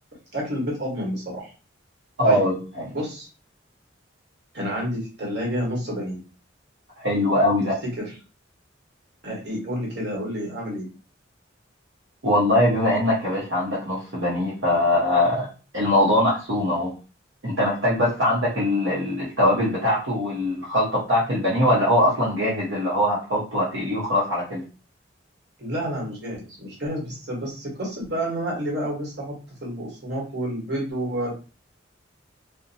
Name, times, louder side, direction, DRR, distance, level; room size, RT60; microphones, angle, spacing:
voice 1, 0.3-1.5 2.2-2.4 2.9-3.3 4.5-6.2 7.8-8.1 9.2-10.9 25.6-29.3 29.6-31.3, equal, 55° right, -2 dB, 1.2 m, -29 dB
voice 2, 2.2-2.9 7.0-7.7 12.2-15.5 15.7-16.9 17.4-24.6, left 1 dB, 75° right, -6 dB, 0.8 m, -22 dB
2.6 x 2.1 x 2.6 m, 0.34 s
head